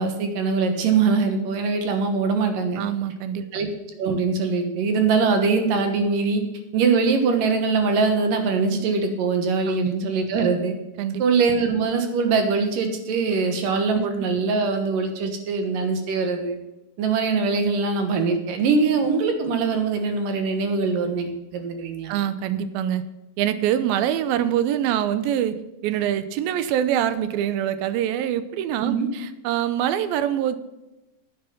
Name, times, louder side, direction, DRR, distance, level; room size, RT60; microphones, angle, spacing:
voice 1, 0.0-2.8 3.5-3.7 4.0-6.4 6.7-10.8 11.2-16.6 17.0-22.1 28.8-29.1, right 4 dB, 65° right, 6 dB, 2.8 m, -22 dB
voice 2, 2.8-3.4 9.7-9.9 11.0-11.2 13.9-14.1 22.1-23.0 23.4-25.6 25.8-30.6, right 10 dB, 85° right, 13 dB, 2.5 m, -24 dB
9.9 x 9.1 x 5.5 m, 0.98 s
omnidirectional pair, 4.4 m